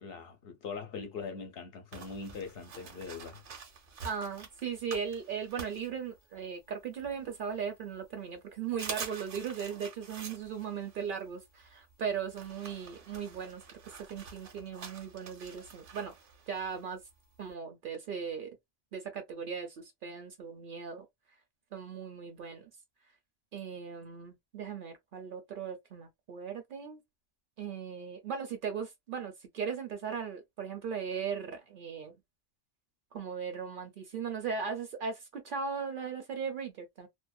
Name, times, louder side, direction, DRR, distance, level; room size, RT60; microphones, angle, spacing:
voice 1, 0.0-3.4, left 5 dB, 65° left, 0.8 m, -42 dB
sound 1, 1.9-6.6 7.0-7.9 8.3-8.4 8.7-17.5, right 5 dB, 80° right, 1.1 m, -47 dB
voice 2, 4.0-16.1 16.5-17.0 17.4-18.5 18.9-21.1 21.7-22.7 23.5-27.0 27.6-32.1 33.1-37.1, right 6 dB, 60° right, 0.6 m, -38 dB
2.6 x 2.0 x 2.3 m
omnidirectional pair, 1.1 m